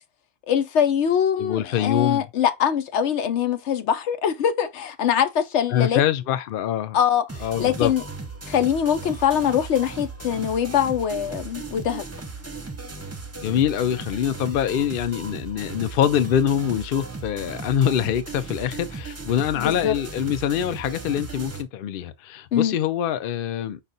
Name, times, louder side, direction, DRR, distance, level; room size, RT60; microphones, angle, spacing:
voice 1, 0.5-6.0 6.9-8.0 8.5-12.0 19.6-19.9 22.5-22.8, left 8 dB, 85° left, 1.0 m, -23 dB
voice 2, 1.4-2.3 5.7-7.0 7.4-7.9 13.4-23.8, left 10 dB, 60° left, 0.7 m, -24 dB
sound 1, 7.3-21.6, right 3 dB, 15° right, 0.6 m, -36 dB
5.4 x 2.5 x 3.9 m
omnidirectional pair, 1.1 m